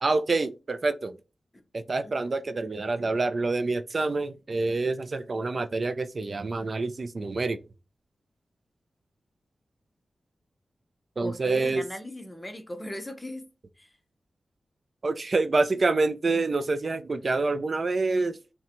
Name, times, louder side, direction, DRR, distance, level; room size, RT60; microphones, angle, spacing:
voice 1, 0.0-1.2 1.7-7.6 11.2-11.8 15.0-18.4, right 3 dB, 55° right, 0.4 m, -27 dB
voice 2, 11.2-13.5 13.8-13.9, left 1 dB, 20° left, 0.8 m, -38 dB
5.6 x 2.2 x 2.9 m
cardioid pair, 50°, 0 cm